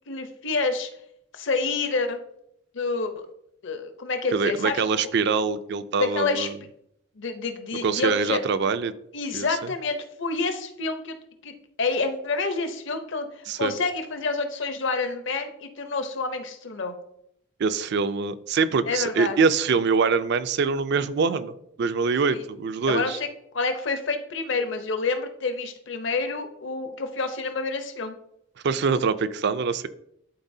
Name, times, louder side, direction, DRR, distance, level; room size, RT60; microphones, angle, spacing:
voice 1, 0.1-0.9 1.3-2.2 2.7-3.3 3.6-4.8 6.0-6.5 7.2-8.4 9.1-11.2 11.4-11.5 11.8-16.9 18.9-19.4 22.3-22.4 22.9-23.3 23.5-28.1, left 3 dB, 60° left, 7 dB, 0.8 m, -28 dB
voice 2, 4.3-6.5 7.8-8.9 9.3-9.5 13.5-13.7 17.6-23.2 28.6-29.9, right 5 dB, 55° right, 13 dB, 0.4 m, -24 dB
11.5 x 4.0 x 2.7 m, 0.76 s
head